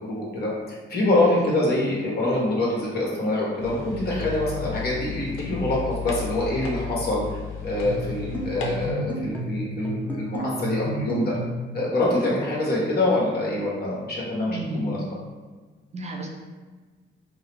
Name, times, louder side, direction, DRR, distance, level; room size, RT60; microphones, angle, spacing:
voice 1, 0.1-7.2 7.6-11.3 11.7-15.0, left 1 dB, 50° left, -4 dB, 1.3 m, -25 dB
sound 1, 3.6-8.9, left 6 dB, 90° left, 0.6 m, -34 dB
sound 2, 7.8-11.7, equal, 10° left, 0.8 m, -31 dB
voice 2, 14.5-15.0 15.9-16.3, right 2 dB, 35° right, 0 dB, 0.5 m, -33 dB
4.5 x 2.0 x 3.4 m, 1.3 s
cardioid pair, 90°, 20 cm